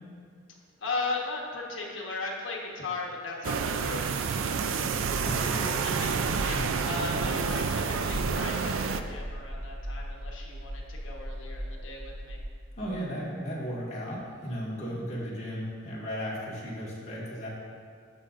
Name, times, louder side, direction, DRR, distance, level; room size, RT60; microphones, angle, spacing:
voice 1, 0.8-5.5 5.8-5.9 6.4-12.4, left 3 dB, 75° left, -2 dB, 1.2 m, -37 dB
sound 1, 3.4-9.0, right 5 dB, 90° right, 0.4 m, -29 dB
voice 2, 5.2-5.8 6.5-6.8 12.8-17.5, equal, 35° left, -7 dB, 1.7 m, -35 dB
sound 2, 6.8-12.5, equal, 20° right, 0.5 m, -38 dB
12.5 x 5.2 x 2.5 m, 2.1 s
head